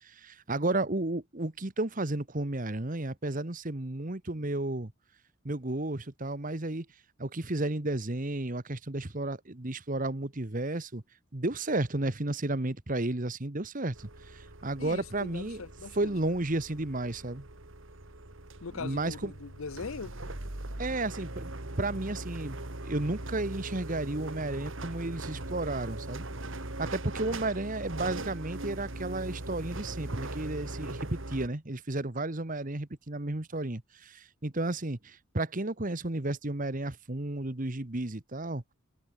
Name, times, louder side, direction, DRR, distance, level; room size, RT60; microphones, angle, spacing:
voice 1, 0.0-4.9 5.4-6.8 7.2-11.0 11.3-15.6 15.9-17.5 18.7-19.3 20.8-21.5 21.8-22.6 22.8-26.2 26.8-38.6, right 2 dB, 40° right, 1.3 m, -33 dB
sound 1, 13.9-31.5, right 2 dB, 60° right, 2.4 m, -40 dB
voice 2, 14.8-16.3 18.6-20.1, left 4 dB, 70° left, 0.7 m, -41 dB
head